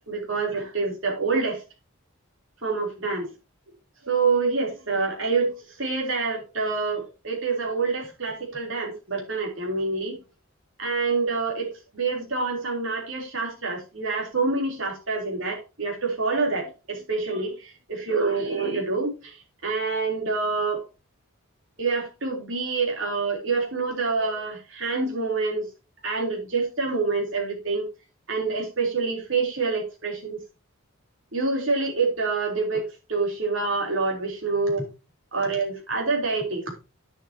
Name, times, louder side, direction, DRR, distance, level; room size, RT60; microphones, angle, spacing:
voice 1, 0.1-1.6 2.6-3.3 4.1-5.5 5.8-10.1 10.8-11.7 11.9-17.5 17.9-19.1 19.6-20.8 21.8-25.7 26.0-27.9 28.3-30.4 31.3-32.8 33.1-34.8 35.3-36.6, right 4 dB, 60° right, 0 dB, 3.6 m, -26 dB
10.5 x 7.5 x 2.8 m, 0.29 s
head